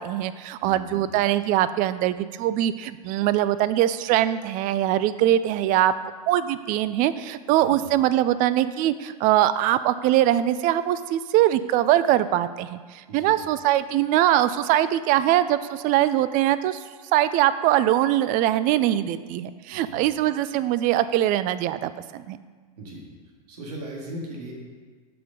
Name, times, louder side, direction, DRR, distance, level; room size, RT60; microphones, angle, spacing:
voice 1, 0.0-5.9 6.3-16.8 17.1-22.4, right 13 dB, 40° right, 14 dB, 0.4 m, -22 dB
voice 2, 0.6-1.1 7.6-7.8 13.1-13.3 19.7-20.0 22.8-23.0 23.5-24.5, right 1 dB, 75° right, -2 dB, 1.9 m, -38 dB
6.4 x 4.3 x 5.2 m, 1.5 s
hypercardioid pair, 105°, 21 cm